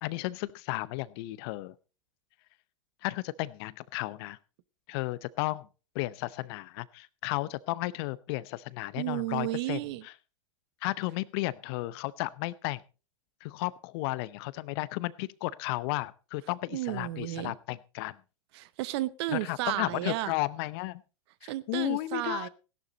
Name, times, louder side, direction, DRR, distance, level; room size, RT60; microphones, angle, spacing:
voice 1, 0.0-1.7 3.0-4.4 4.9-5.7 5.9-9.8 10.0-10.1 10.8-12.8 13.4-18.2 19.3-21.0 21.4-22.5, left 19 dB, 50° left, 19 dB, 0.8 m, -33 dB
voice 2, 9.0-10.0 16.7-17.5 18.5-20.3 21.4-22.5, right 16 dB, 55° right, 17 dB, 1.0 m, -33 dB
16.5 x 11.5 x 4.0 m, 0.34 s
hypercardioid pair, 95°, 17 cm